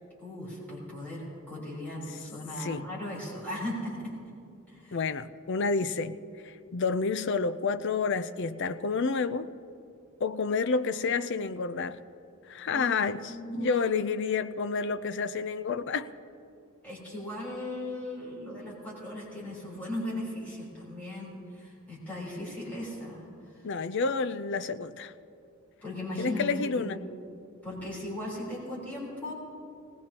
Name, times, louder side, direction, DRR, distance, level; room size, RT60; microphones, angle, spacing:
voice 1, 0.2-4.1 4.7-5.0 12.6-13.0 13.3-13.8 16.8-23.3 23.5-23.7 25.8-26.9 27.6-29.3, left 1 dB, 5° left, -7 dB, 3.7 m, -37 dB
voice 2, 4.9-6.2 6.4-9.5 10.2-12.0 12.5-16.1 23.6-25.1 26.2-27.0, left 4 dB, 55° left, 12 dB, 0.4 m, -29 dB
19.0 x 18.0 x 2.9 m, 2.6 s
head